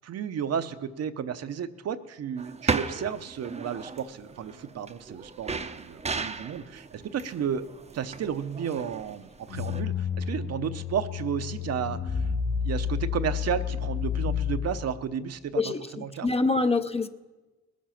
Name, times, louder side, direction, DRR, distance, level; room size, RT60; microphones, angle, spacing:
voice 1, 0.0-7.6 7.9-12.3 12.6-16.3, right 8 dB, 55° right, 10 dB, 0.7 m, -33 dB
sound 1, 2.4-9.8, right 4 dB, 20° right, 0.6 m, -35 dB
sound 2, 9.5-14.9, left 7 dB, 80° left, 1.7 m, -30 dB
voice 2, 15.5-17.1, left 3 dB, 20° left, 10 dB, 0.6 m, -26 dB
20.0 x 7.3 x 5.8 m, 1.2 s
cardioid pair, 90°, 30 cm